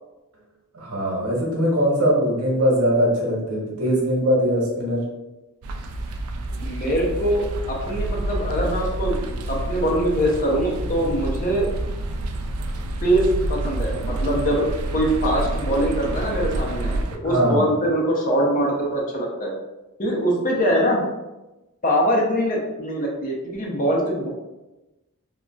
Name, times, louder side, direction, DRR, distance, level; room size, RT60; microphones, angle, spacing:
voice 1, 0.7-5.0 17.2-17.7, equal, 90° right, -3 dB, 1.0 m, -21 dB
sound 1, 5.6-17.2, right 1 dB, 75° right, 0.3 m, -28 dB
voice 2, 6.6-9.2 9.5-11.7 13.0-13.2 13.5-14.6 14.9-19.6 20.0-21.0 21.8-24.3, equal, 40° left, -1 dB, 0.6 m, -23 dB
3.7 x 2.2 x 2.2 m, 1.0 s
head